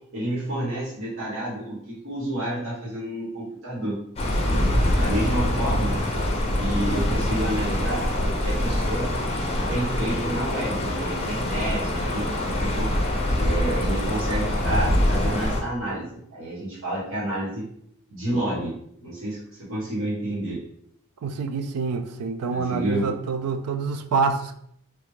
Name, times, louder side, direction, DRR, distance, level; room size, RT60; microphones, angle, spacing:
voice 1, 0.1-4.0 4.4-6.0 6.6-9.1 9.7-12.9 13.3-17.7 18.1-18.7 19.0-20.6 22.5-23.1, right 1 dB, 60° right, -8 dB, 1.3 m, -29 dB
sound 1, 4.2-15.6, left 1 dB, 25° left, 0.5 m, -24 dB
voice 2, 21.2-24.5, right 4 dB, 90° right, 8 dB, 0.4 m, -26 dB
3.3 x 2.4 x 3.1 m, 0.71 s
head